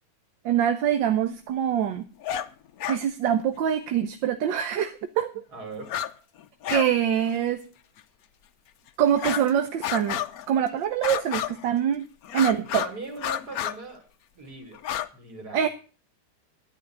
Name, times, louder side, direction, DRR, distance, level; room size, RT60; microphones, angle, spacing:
voice 1, 0.4-2.1 2.9-5.3 6.7-7.6 9.0-10.2 10.5-12.0 12.3-12.8 15.5-15.7, right 9 dB, 70° right, 9 dB, 1.4 m, -24 dB
sound 1, 2.2-2.5 2.8-3.0 4.6-4.7 5.8-6.1 6.4-6.9 7.2-7.3 8.0-8.1 9.1-9.5 9.8-10.5 11.0-11.7 12.2-12.9 13.2-13.8 14.7-15.1, left 11 dB, 70° left, 0.8 m, -30 dB
voice 2, 5.5-6.0 12.7-14.0 14.3-14.8 15.1-15.7, right 3 dB, 50° right, 4 dB, 3.3 m, -39 dB
10.5 x 9.8 x 5.9 m, 0.38 s
omnidirectional pair, 2.3 m